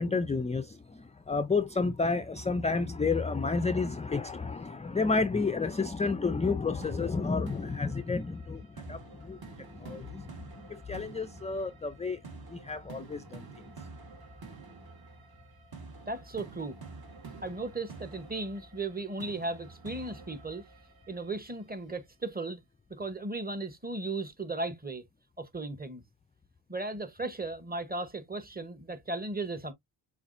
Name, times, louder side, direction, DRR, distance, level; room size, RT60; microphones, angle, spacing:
voice 1, 0.0-12.2 12.5-13.5, left 4 dB, 15° left, 0.4 m, -31 dB
sound 1, 6.8-21.8, right 3 dB, 45° right, 1.6 m, -49 dB
voice 2, 16.1-16.8 17.4-20.7 21.1-22.6 22.9-25.0 25.4-26.0 26.7-29.7, right 2 dB, 20° right, 1.0 m, -36 dB
6.9 x 2.5 x 2.6 m
cardioid pair, 60°, 50 cm